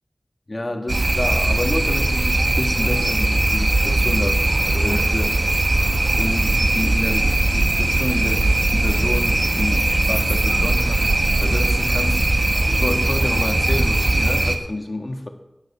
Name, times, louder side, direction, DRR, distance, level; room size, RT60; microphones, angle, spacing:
voice 1, 0.5-5.4 6.1-12.3 12.7-15.3, left 1 dB, 40° left, 4 dB, 1.8 m, -29 dB
sound 1, 0.9-14.6, right 2 dB, 60° right, 1.2 m, -19 dB
11.0 x 9.7 x 5.7 m, 0.95 s
wide cardioid pair, 60°, 0 cm